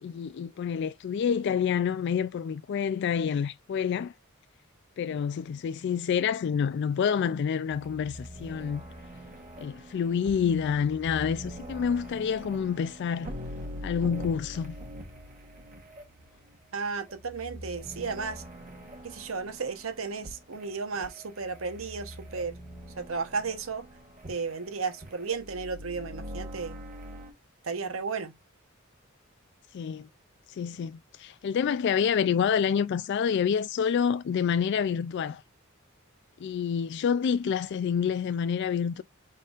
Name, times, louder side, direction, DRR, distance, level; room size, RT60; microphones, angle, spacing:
voice 1, 0.0-4.1 5.0-8.8 9.6-13.3 13.8-14.7 29.7-30.1 30.6-35.4 36.4-39.0, left 7 dB, 55° left, 0.3 m, -28 dB
sound 1, 7.7-27.3, equal, 40° right, 1.8 m, -44 dB
voice 2, 16.7-18.4 19.0-22.6 23.0-23.9 24.3-26.8 27.6-28.3, right 4 dB, 70° right, 1.0 m, -34 dB
5.2 x 4.1 x 2.4 m
head